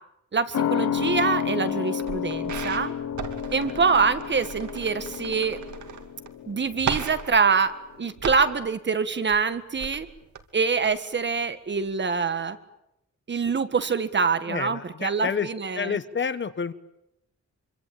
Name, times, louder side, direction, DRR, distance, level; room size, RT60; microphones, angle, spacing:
voice 1, 0.3-2.9 3.5-5.6 6.5-7.7 8.0-10.1 10.5-12.6 13.3-16.0, right 5 dB, 40° right, 11 dB, 1.7 m, -25 dB
sound 1, 0.5-7.6 7.9-8.0, left 9 dB, 80° left, 1.0 m, -31 dB
sound 2, 1.1-1.7 2.0-6.3 6.5-8.6 9.1-10.4 10.8-10.9 11.4-11.5, right 6 dB, 80° right, 2.9 m, -36 dB
voice 2, 14.5-15.5 15.7-16.7, left 6 dB, 40° left, 15 dB, 1.1 m, -29 dB
26.5 x 24.5 x 8.9 m, 0.84 s
wide cardioid pair, 155°, 29 cm